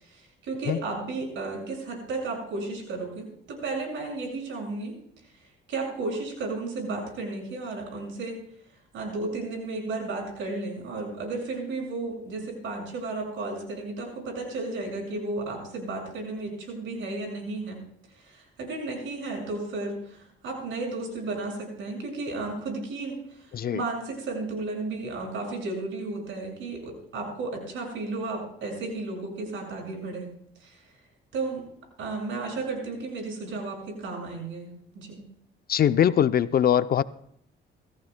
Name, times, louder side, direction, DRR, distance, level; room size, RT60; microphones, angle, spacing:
voice 1, 0.0-4.9 5.4-8.3 8.9-17.8 18.2-30.3 30.6-30.8 31.3-31.6 32.0-34.7 34.9-35.2, right 3 dB, 80° right, 1 dB, 6.0 m, -33 dB
voice 2, 35.7-37.0, left 9 dB, 50° left, 14 dB, 0.5 m, -22 dB
24.5 x 15.0 x 2.2 m, 0.70 s
cardioid pair, 90°, 20 cm